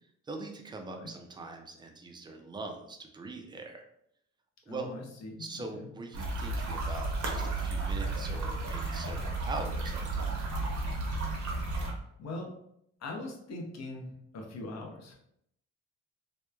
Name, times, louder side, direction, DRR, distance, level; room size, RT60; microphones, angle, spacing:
voice 1, 0.3-3.8 4.7-4.9 5.4-10.4, right 3 dB, 15° right, 4 dB, 0.3 m, -42 dB
voice 2, 4.7-5.9 12.2-12.5 13.0-15.1, left 2 dB, 65° left, 0 dB, 0.7 m, -41 dB
sound 1, 6.1-11.9, right 2 dB, 75° right, 0.8 m, -33 dB
3.0 x 2.1 x 2.2 m, 0.74 s
cardioid pair, 120°, 29 cm